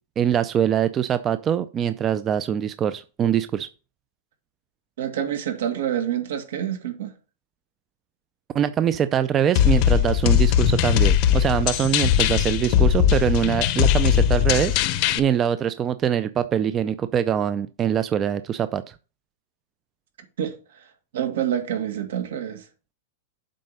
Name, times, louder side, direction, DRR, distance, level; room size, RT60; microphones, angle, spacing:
voice 1, 0.2-3.7 8.5-18.8, right 9 dB, 20° right, 0.4 m, -23 dB
voice 2, 5.0-7.1 20.4-20.9 21.1-22.7, right 10 dB, 80° right, 2.2 m, -27 dB
sound 1, 9.6-15.2, left 10 dB, 45° left, 0.7 m, -19 dB
7.6 x 4.8 x 5.4 m
supercardioid pair, 150°, 0 cm